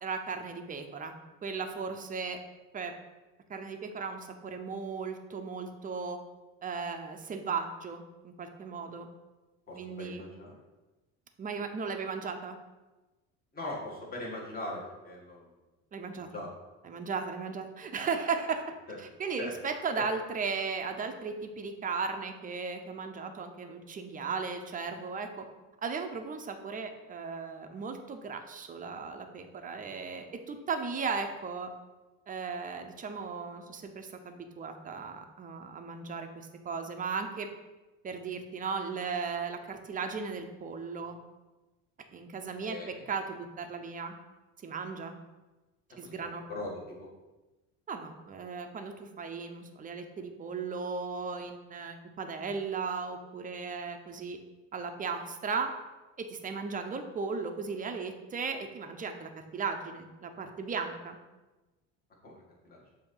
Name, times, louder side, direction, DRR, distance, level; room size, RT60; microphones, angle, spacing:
voice 1, 0.0-1.1 1.4-2.4 2.7-2.9 3.5-6.2 6.6-9.1 9.7-10.2 11.4-12.6 15.9-16.3 16.8-18.7 19.0-25.4 25.8-31.7 32.3-37.5 38.0-41.2 42.1-44.1 44.6-45.1 46.0-46.4 47.9-54.4 54.7-55.7 56.2-61.2, right 5 dB, 25° right, 5 dB, 0.6 m, -36 dB
voice 2, 9.7-10.6 13.5-15.5 16.0-16.5 18.9-19.0 19.4-19.5 42.7-43.0 46.0-46.2 46.5-47.1 62.2-62.8, left 2 dB, 25° left, -3 dB, 1.9 m, -40 dB
6.9 x 2.9 x 5.5 m, 1.1 s
cardioid pair, 120°, 34 cm